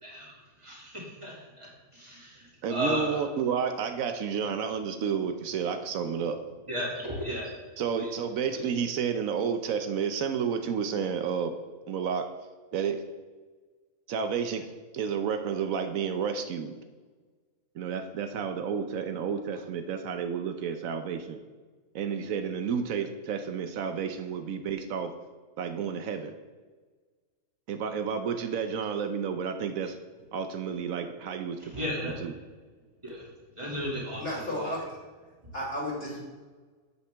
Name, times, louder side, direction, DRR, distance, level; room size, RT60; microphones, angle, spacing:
voice 1, 0.0-3.2 6.7-7.6 8.0-8.1 8.5-8.7 31.6-32.2 33.0-33.3 33.6-34.8, equal, 20° right, -4 dB, 2.3 m, -35 dB
voice 2, 2.6-6.4 7.8-11.5 11.9-12.3 12.7-13.0 14.1-16.8 17.7-21.4 21.9-25.1 25.6-26.3 27.7-30.0 30.3-31.7 32.0-32.3, right 6 dB, 75° right, 8 dB, 1.1 m, -31 dB
voice 3, 34.2-34.8 35.5-36.2, left 1 dB, 45° left, -7 dB, 3.0 m, -32 dB
9.6 x 7.9 x 3.4 m, 1.4 s
omnidirectional pair, 1.5 m